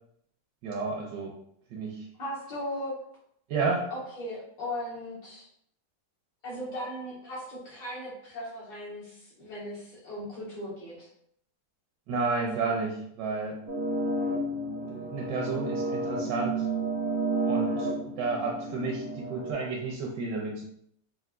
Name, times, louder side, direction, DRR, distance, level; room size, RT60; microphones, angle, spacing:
voice 1, 0.6-1.3 1.7-2.1 3.5-3.9 12.1-13.6 14.9-16.6 17.4-20.6, right 4 dB, 80° right, -1 dB, 1.3 m, -31 dB
voice 2, 2.2-3.0 3.9-5.5 6.4-11.1, left 1 dB, 65° left, -8 dB, 2.2 m, -37 dB
sound 1, 13.7-19.5, right 2 dB, 50° right, 0.6 m, -31 dB
5.6 x 2.5 x 2.4 m, 0.69 s
omnidirectional pair, 1.9 m